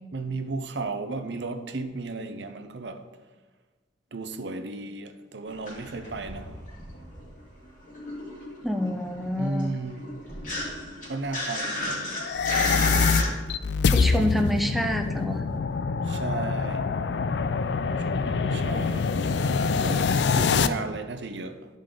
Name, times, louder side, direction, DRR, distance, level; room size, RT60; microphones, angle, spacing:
voice 1, 0.1-3.1 4.1-6.6 9.4-10.1 11.0-12.1 14.0-14.2 16.0-17.0 18.0-19.1 19.8-20.1 20.4-21.7, right 3 dB, 80° right, 0.7 m, -34 dB
sound 1, 5.5-7.4 7.7-13.3, left 1 dB, 50° left, 2.7 m, -33 dB
voice 2, 8.6-9.7 13.9-15.4, equal, ahead, 0.5 m, -27 dB
sound 2, 12.2-20.7, left 5 dB, 70° left, 0.4 m, -25 dB
12.0 x 5.2 x 3.8 m
head